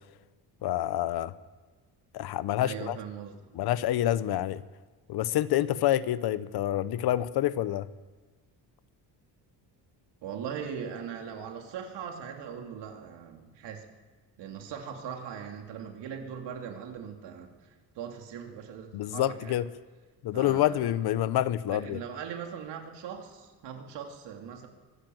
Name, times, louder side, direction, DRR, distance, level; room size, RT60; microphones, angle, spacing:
voice 1, 0.6-1.3 2.1-3.0 3.5-4.6 5.1-7.9 18.9-19.7 20.2-22.0, left 13 dB, 60° left, 15 dB, 0.9 m, -27 dB
voice 2, 2.6-3.4 10.2-13.9 14.4-19.6 20.3-20.9 21.7-24.7, right 7 dB, 75° right, 3 dB, 2.8 m, -40 dB
24.5 x 13.5 x 7.8 m, 1.3 s
cardioid pair, 170°, 42 cm